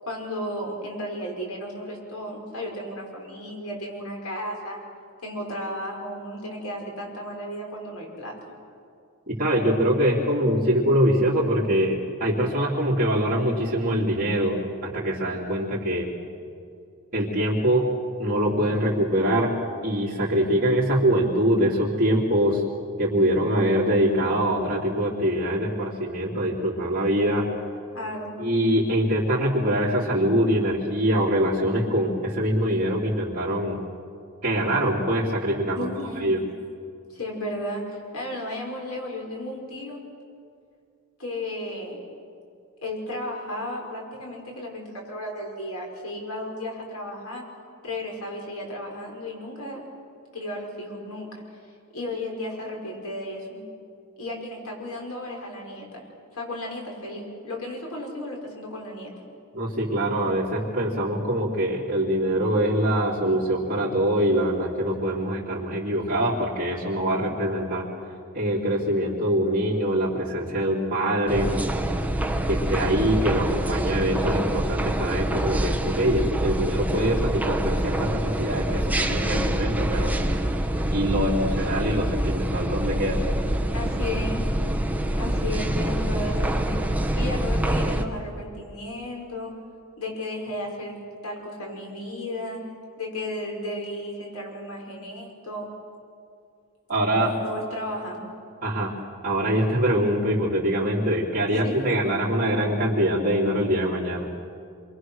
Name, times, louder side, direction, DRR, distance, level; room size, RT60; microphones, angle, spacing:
voice 1, 0.0-4.8 5.2-8.5 27.9-28.4 35.7-36.4 37.1-40.0 41.2-42.0 42.8-47.4 47.8-49.8 50.3-51.6 51.9-53.6 54.2-56.0 56.3-59.1 83.7-84.5 85.2-86.7 87.2-89.5 90.0-92.6 93.0-95.7 97.2-98.2 101.5-102.0, left 1 dB, 90° left, 0 dB, 5.8 m, -34 dB
voice 2, 9.3-16.1 17.1-17.9 18.2-19.6 19.8-22.6 23.0-27.5 28.4-33.8 34.4-35.9 36.2-36.4 59.5-67.8 68.3-71.5 72.5-80.2 80.9-83.2 96.9-97.3 98.6-98.9 99.2-104.3, equal, 40° right, -8 dB, 3.3 m, -24 dB
sound 1, 71.3-88.0, right 1 dB, 5° right, 1.2 m, -25 dB
27.0 x 24.0 x 6.4 m, 2.4 s
head